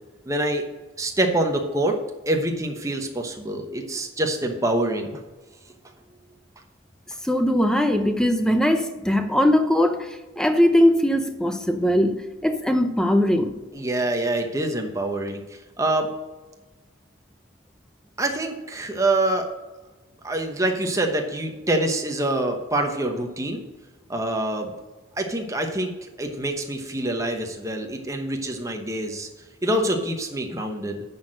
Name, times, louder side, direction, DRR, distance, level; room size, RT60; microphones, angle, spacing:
voice 1, 0.2-0.6 1.0-2.0 2.3-5.2 13.7-16.1 18.2-19.5 20.2-23.6 24.1-24.7 25.2-25.9 26.2-29.3 29.6-31.0, right 1 dB, 15° right, 1.0 m, -25 dB
voice 2, 7.2-13.6, left 1 dB, 5° left, 0.6 m, -20 dB
10.5 x 4.4 x 6.4 m
head